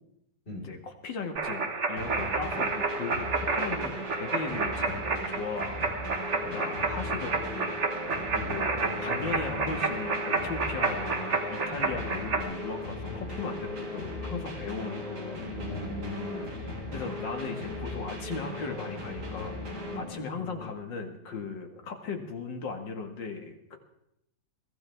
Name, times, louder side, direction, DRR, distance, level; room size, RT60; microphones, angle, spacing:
voice 1, 0.5-5.9 6.5-7.7 8.4-15.5 16.9-19.6 20.0-23.8, left 4 dB, 70° left, 4 dB, 2.4 m, -37 dB
sound 1, 1.4-12.4, right 4 dB, 40° right, 1.6 m, -30 dB
sound 2, 2.0-20.0, equal, 55° right, 3.5 m, -39 dB
sound 3, 6.3-20.7, left 7 dB, 85° left, 2.2 m, -43 dB
voice 2, 15.6-16.5 19.9-20.1, left 1 dB, 30° left, -2 dB, 4.7 m, -39 dB
22.5 x 15.5 x 3.5 m, 0.79 s
omnidirectional pair, 2.1 m